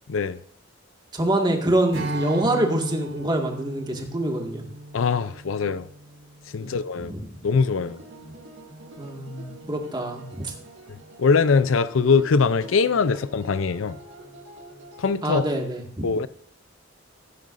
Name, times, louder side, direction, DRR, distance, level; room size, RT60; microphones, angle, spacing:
voice 1, 0.1-0.4 4.9-5.9 6.5-7.1 7.4-8.0 11.2-14.0 15.0-15.4 16.0-16.3, left 5 dB, 80° left, 0.5 m, -22 dB
voice 2, 1.1-4.7 6.6-6.8 7.0-7.2 9.0-10.5 15.2-16.1, right 1 dB, 20° right, 1.8 m, -25 dB
Strum, 1.9-7.3, right 1 dB, 90° right, 3.9 m, -36 dB
sound 1, 7.8-15.1, right 2 dB, 65° right, 2.1 m, -45 dB
16.0 x 9.4 x 2.6 m
head